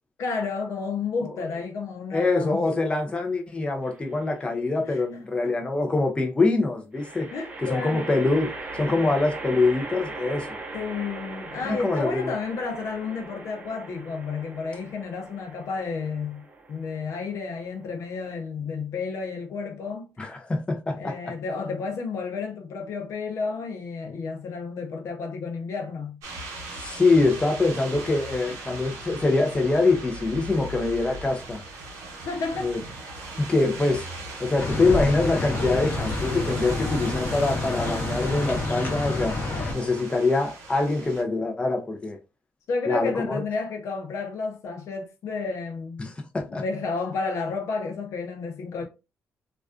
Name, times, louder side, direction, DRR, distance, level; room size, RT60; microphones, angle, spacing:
voice 1, 0.2-2.7 4.9-5.0 5.4-5.5 7.3-8.1 10.7-20.1 20.9-26.2 28.5-28.6 32.2-32.7 42.7-46.1 46.5-48.8, left 4 dB, 70° left, 0.6 m, -31 dB
voice 2, 2.1-7.3 7.6-10.6 11.6-12.3 20.2-21.3 26.8-31.6 32.6-32.8 33.4-34.1 34.4-39.4 39.7-42.2 42.9-43.4 46.0-46.6, left 3 dB, 20° left, 0.5 m, -24 dB
sound 1, 3.8-4.4 6.9-18.3, right 2 dB, 30° right, 0.6 m, -40 dB
sound 2, 26.2-41.2, right 2 dB, 90° right, 0.8 m, -39 dB
sound 3, 34.6-39.7, left 2 dB, 35° left, 0.9 m, -29 dB
2.3 x 2.3 x 2.3 m
cardioid pair, 85°, 5 cm